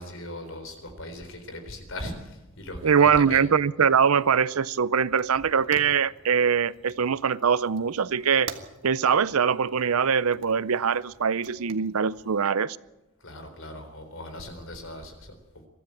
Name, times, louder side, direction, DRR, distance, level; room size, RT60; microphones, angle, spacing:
voice 1, 0.0-3.4 13.2-15.3, left 1 dB, 65° left, 7 dB, 3.9 m, -38 dB
voice 2, 2.8-8.5 8.8-12.8, right 6 dB, 80° right, 18 dB, 0.6 m, -22 dB
Fire, 4.1-12.5, right 5 dB, 55° right, 1.6 m, -47 dB
23.0 x 13.5 x 8.7 m, 1.0 s
head